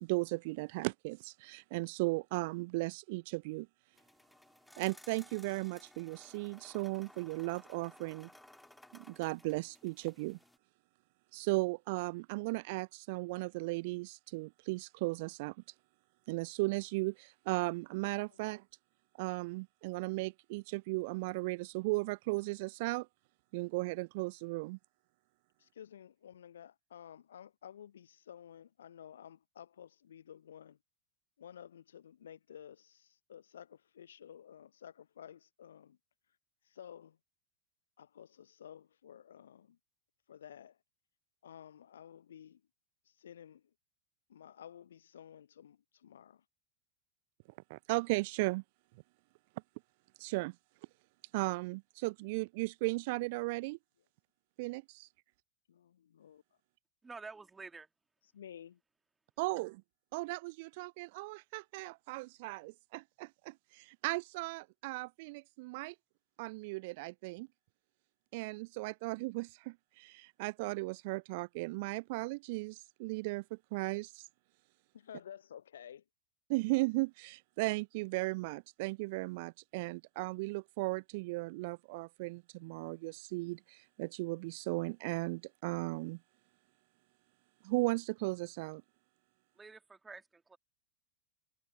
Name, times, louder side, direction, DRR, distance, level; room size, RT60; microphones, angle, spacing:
voice 1, 0.0-3.7 4.8-8.3 8.9-10.4 11.3-15.6 16.3-18.6 19.2-23.1 23.5-24.8 47.7-48.6 50.2-50.6 51.3-53.8 54.6-55.1 59.4-59.8 60.1-65.9 66.4-67.5 68.3-74.3 76.5-86.2 87.6-88.8, right 24 dB, 50° right, 0.3 m, -36 dB
sound 1, 3.9-10.6, left 1 dB, 5° left, 3.2 m, -59 dB
voice 2, 25.6-30.8 31.4-36.0 36.6-37.2 38.0-39.8 40.3-40.8 41.4-42.6 43.1-43.6 44.3-46.4 55.7-56.4 58.3-58.8 74.9-76.0, left 9 dB, 65° left, 0.8 m, -53 dB
voice 3, 57.0-57.9 89.5-90.6, right 4 dB, 10° right, 2.6 m, -49 dB
figure-of-eight pair, 90°, 0 cm